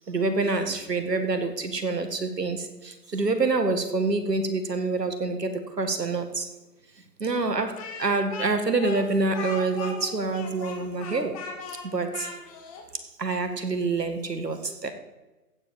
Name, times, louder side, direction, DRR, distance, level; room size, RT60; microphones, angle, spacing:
voice 1, 0.1-6.5 7.2-11.4 11.8-12.4 13.0-14.9, right 3 dB, 85° right, 8 dB, 1.9 m, -27 dB
Speech, 7.8-12.9, left 4 dB, 20° left, 1.6 m, -38 dB
15.0 x 5.3 x 7.6 m, 1.1 s
figure-of-eight pair, 145°, 47 cm